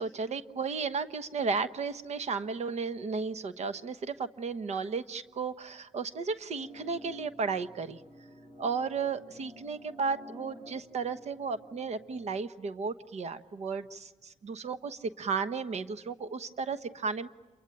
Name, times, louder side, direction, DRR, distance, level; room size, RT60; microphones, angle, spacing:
voice 1, 0.0-8.0 8.6-17.3, right 5 dB, 65° right, 11 dB, 1.1 m, -34 dB
sound 1, 6.5-12.4, equal, 35° right, 6.2 m, -51 dB
28.0 x 23.0 x 9.0 m, 1.3 s
cardioid pair, 80°, 12 cm